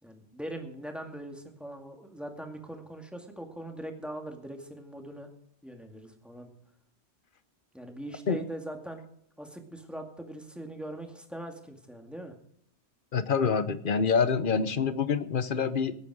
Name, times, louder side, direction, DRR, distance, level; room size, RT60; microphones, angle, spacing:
voice 1, 0.0-5.3 5.6-6.5 7.7-9.1 9.4-12.4, right 1 dB, ahead, 3 dB, 2.1 m, -41 dB
voice 2, 13.1-16.0, left 5 dB, 50° left, 13 dB, 1.0 m, -26 dB
18.5 x 9.0 x 4.8 m, 0.69 s
omnidirectional pair, 1.2 m